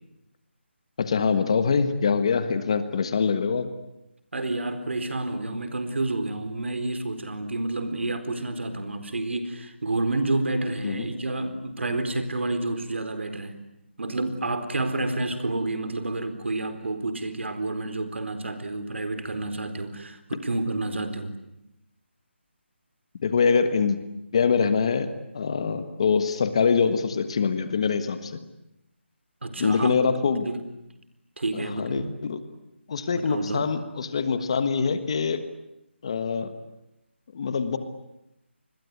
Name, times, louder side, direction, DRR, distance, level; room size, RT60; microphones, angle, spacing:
voice 1, 1.0-3.7 10.8-11.1 23.2-24.0 24.3-28.4 29.6-30.5 31.5-32.4 32.9-35.4 36.0-36.6 37.3-37.8, left 5 dB, 30° left, 11 dB, 1.5 m, -24 dB
voice 2, 4.3-13.6 14.0-21.4 29.4-30.1 30.4-30.6 31.4-32.1 33.2-33.7, right 2 dB, 70° right, 9 dB, 4.3 m, -29 dB
28.5 x 21.5 x 9.6 m, 0.87 s
hypercardioid pair, 175°, 7 cm